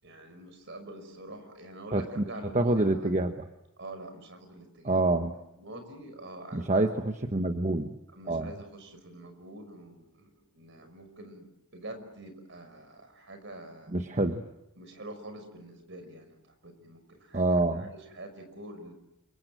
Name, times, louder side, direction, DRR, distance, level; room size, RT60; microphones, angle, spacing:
voice 1, 0.0-3.1 3.8-5.0 5.6-6.9 8.1-13.9 14.8-18.9, right 1 dB, 60° right, 7 dB, 5.7 m, -46 dB
voice 2, 1.9-2.2 2.5-3.3 4.8-5.3 6.5-7.9 8.3-8.5 13.9-14.4 17.3-17.9, right 2 dB, 35° right, 6 dB, 1.1 m, -26 dB
28.5 x 24.0 x 7.7 m, 0.91 s
head